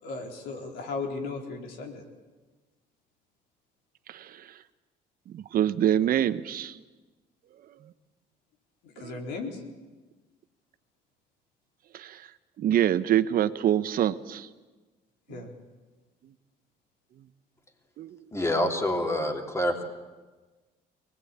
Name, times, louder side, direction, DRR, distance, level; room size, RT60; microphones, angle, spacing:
voice 1, 0.0-2.0 8.8-9.6 15.3-15.5, left 3 dB, 85° left, 4.2 m, -36 dB
voice 2, 4.1-4.6 5.3-6.8 7.7-7.9 9.0-9.2 11.9-12.3 12.6-14.5 15.3-15.5 16.2-16.3 17.2-17.3 18.0-18.3, right 11 dB, 60° right, 1.1 m, -27 dB
voice 3, 18.3-19.8, left 1 dB, 15° left, 3.0 m, -27 dB
23.5 x 20.5 x 8.7 m
cardioid pair, 110°, 17 cm